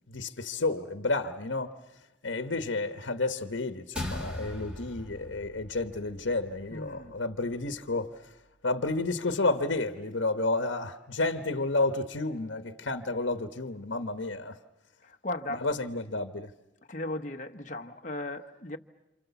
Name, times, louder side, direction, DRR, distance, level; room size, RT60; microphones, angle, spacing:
voice 1, 0.1-1.7 2.2-8.1 8.6-14.6 15.5-16.5, left 2 dB, 80° left, 1.2 m, -31 dB
sound 1, 3.9-8.5, left 1 dB, 5° right, 2.5 m, -42 dB
voice 2, 6.7-7.2 15.0-15.7 16.9-18.8, left 2 dB, 40° left, 1.1 m, -36 dB
29.0 x 28.0 x 7.0 m
head